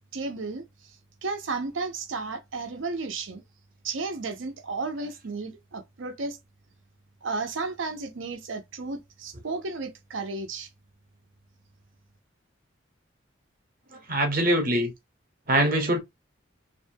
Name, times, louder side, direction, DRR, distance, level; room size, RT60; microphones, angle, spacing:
voice 1, 0.1-1.0 1.2-3.4 3.8-6.4 7.2-10.7, right 3 dB, 80° right, 0.6 m, -33 dB
voice 2, 13.9-14.9 15.5-16.0, right 1 dB, 45° right, 0.8 m, -23 dB
2.6 x 2.2 x 2.6 m
head